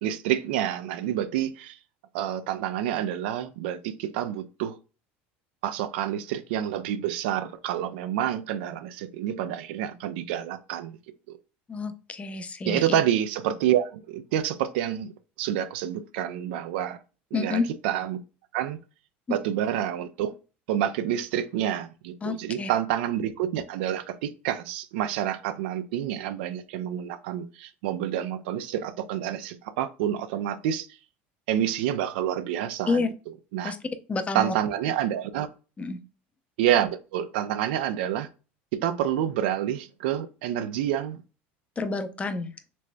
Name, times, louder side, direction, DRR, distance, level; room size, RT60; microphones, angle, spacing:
voice 1, 0.0-1.8 2.1-4.8 5.6-11.0 11.3-11.4 12.7-15.1 15.4-17.0 17.3-18.2 18.5-18.8 19.3-20.3 20.7-30.9 31.5-33.0 33.5-33.7 34.3-35.5 36.6-38.3 38.7-41.2, right 11 dB, 80° right, 0.5 m, -28 dB
voice 2, 11.7-12.9 17.3-17.7 19.3-19.4 22.2-22.7 32.9-33.1 33.6-33.8 34.1-34.5 35.8-36.0 41.8-42.5, left 4 dB, 20° left, 0.5 m, -29 dB
4.1 x 3.2 x 2.2 m
supercardioid pair, 105°, 6 cm